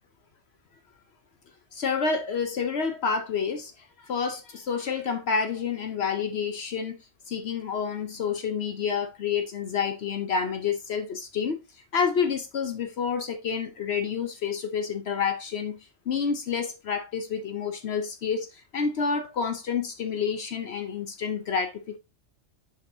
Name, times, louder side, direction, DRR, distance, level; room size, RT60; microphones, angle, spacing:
voice 1, 1.7-7.0 7.3-11.6 11.9-15.8 16.1-22.0, left 6 dB, 65° left, 1.0 m, -29 dB
7.2 x 5.4 x 2.7 m
omnidirectional pair, 1.2 m